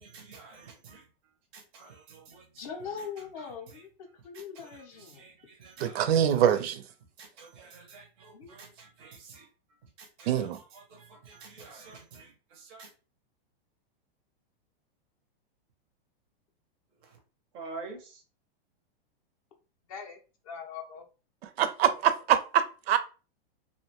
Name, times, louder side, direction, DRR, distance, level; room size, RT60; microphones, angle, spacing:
voice 1, 0.0-1.1 1.5-3.8 4.3-6.6 7.0-9.5 9.8-12.9 17.0-17.2 17.5-18.2, right 4 dB, 20° right, 0.4 m, -49 dB
voice 2, 2.6-3.9 4.2-5.2 8.3-8.5 19.9-21.0 21.8-22.0, left 6 dB, 35° left, 0.5 m, -41 dB
voice 3, 5.8-6.8 10.3-10.6 21.6-23.0, right 9 dB, 80° right, 0.5 m, -24 dB
2.6 x 2.1 x 2.8 m
supercardioid pair, 165°, 30 cm